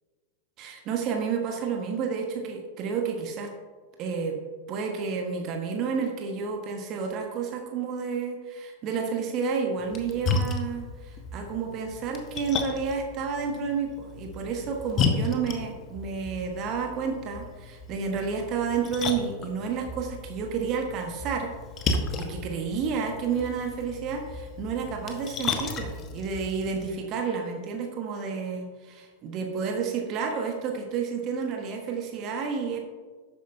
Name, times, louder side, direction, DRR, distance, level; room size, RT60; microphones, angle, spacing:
voice 1, 0.6-3.5 4.0-4.3 4.7-21.5 22.2-32.8, right 5 dB, 35° right, 3 dB, 1.3 m, -30 dB
Splash splatter, 9.8-26.9, left 4 dB, 30° left, 1.1 m, -34 dB
11.5 x 8.7 x 2.7 m, 1.4 s
figure-of-eight pair, 90°, 0 cm